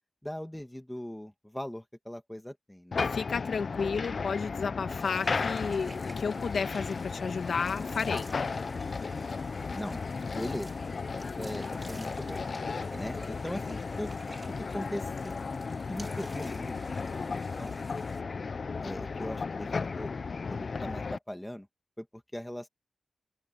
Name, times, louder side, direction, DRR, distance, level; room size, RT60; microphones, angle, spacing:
voice 1, 0.2-3.0 9.7-10.0 10.3-10.7 11.4-12.4 12.9-14.1 14.7-15.6 15.9-17.8 18.8-20.1 20.5-21.7 22.0-22.7, left 1 dB, 5° left, 2.6 m, -40 dB
sound 1, 2.9-21.2, left 4 dB, 50° left, 0.7 m, -35 dB
voice 2, 3.1-8.3, left 5 dB, 80° left, 2.0 m, -32 dB
sound 2, 4.9-18.2, right 2 dB, 20° right, 4.8 m, -51 dB
wide cardioid pair, 130°, 0 cm